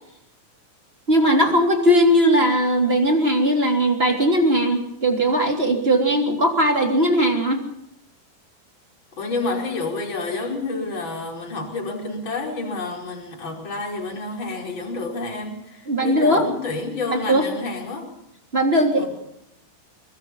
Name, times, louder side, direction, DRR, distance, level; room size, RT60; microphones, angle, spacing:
voice 1, 1.1-7.6 15.9-16.4 17.1-17.4 18.5-19.1, equal, 15° right, 3 dB, 2.4 m, -19 dB
voice 2, 9.2-18.1 19.0-19.1, left 3 dB, 25° left, 0 dB, 5.4 m, -29 dB
24.0 x 23.0 x 5.6 m, 0.81 s
omnidirectional pair, 5.6 m